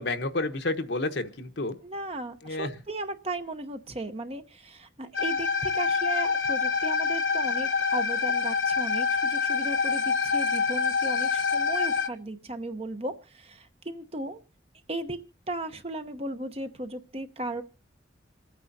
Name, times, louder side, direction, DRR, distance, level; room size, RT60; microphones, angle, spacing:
voice 1, 0.0-1.8 2.4-2.7, left 2 dB, 65° left, 8 dB, 1.0 m, -30 dB
voice 2, 1.8-14.4 14.9-15.2 15.5-17.6, right 1 dB, 30° right, 8 dB, 0.9 m, -36 dB
sound 1, 5.1-12.1, left 5 dB, 85° left, 1.2 m, -26 dB
27.5 x 9.3 x 2.7 m, 0.31 s
head